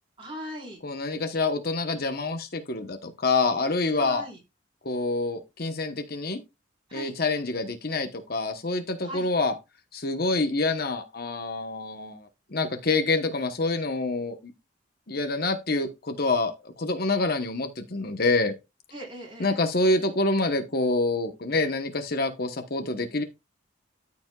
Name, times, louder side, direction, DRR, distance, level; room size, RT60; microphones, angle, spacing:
voice 1, 0.2-0.8 4.0-4.4 6.9-7.1 9.0-9.3 18.9-19.5, equal, 25° right, 4.4 m, -39 dB
voice 2, 0.8-4.2 4.8-6.4 6.9-9.6 9.9-14.4 15.1-18.5 19.4-23.2, left 3 dB, 50° left, 1.1 m, -27 dB
13.5 x 5.2 x 2.4 m
head